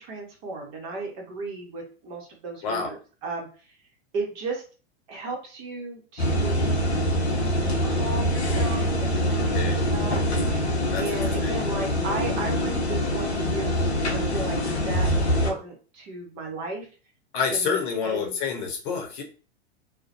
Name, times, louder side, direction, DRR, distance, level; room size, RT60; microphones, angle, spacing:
voice 1, 0.0-3.5 4.1-4.6 5.1-6.8 7.8-10.2 11.0-14.6 14.8-16.9 17.5-18.4, right 3 dB, 40° right, 0 dB, 1.0 m, -35 dB
sound 1, 6.2-15.5, equal, 80° left, 0.7 m, -24 dB
voice 2, 9.5-9.9 10.9-11.6 17.3-19.2, left 6 dB, 50° left, 2 dB, 0.8 m, -28 dB
2.4 x 2.1 x 2.6 m, 0.36 s
figure-of-eight pair, 100°, 33 cm